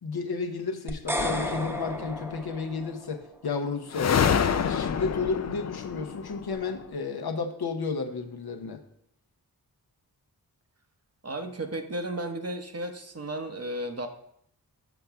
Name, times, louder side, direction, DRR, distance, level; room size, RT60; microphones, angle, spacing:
voice 1, 0.0-4.3 4.6-8.8, left 4 dB, 75° left, 4 dB, 0.8 m, -32 dB
sound 1, 0.9-3.2, equal, 5° right, 0.8 m, -33 dB
sound 2, 1.2-2.3 3.9-6.8, left 7 dB, 45° left, 0.4 m, -28 dB
voice 2, 11.2-14.1, right 1 dB, 40° right, 6 dB, 0.8 m, -34 dB
7.1 x 5.7 x 3.5 m, 0.70 s
wide cardioid pair, 60°, 39 cm